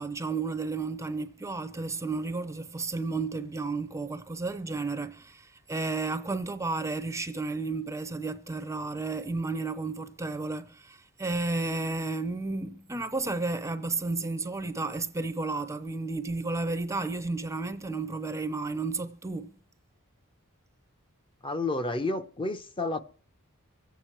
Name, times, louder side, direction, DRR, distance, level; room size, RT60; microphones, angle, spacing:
voice 1, 0.0-19.5, right 3 dB, 15° right, 0.6 m, -32 dB
voice 2, 21.4-23.0, left 2 dB, 25° left, 0.7 m, -30 dB
24.5 x 8.2 x 4.5 m
head